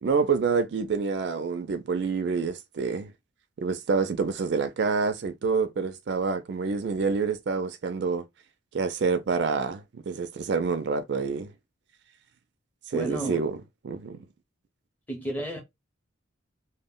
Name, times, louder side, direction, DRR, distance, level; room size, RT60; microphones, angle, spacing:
voice 1, 0.0-3.1 3.6-8.2 8.7-11.5 12.9-13.6 13.8-14.2, right 5 dB, 60° right, 0.4 m, -27 dB
voice 2, 12.9-13.4 15.1-15.6, right 1 dB, 10° left, 0.7 m, -32 dB
2.2 x 2.1 x 3.5 m
head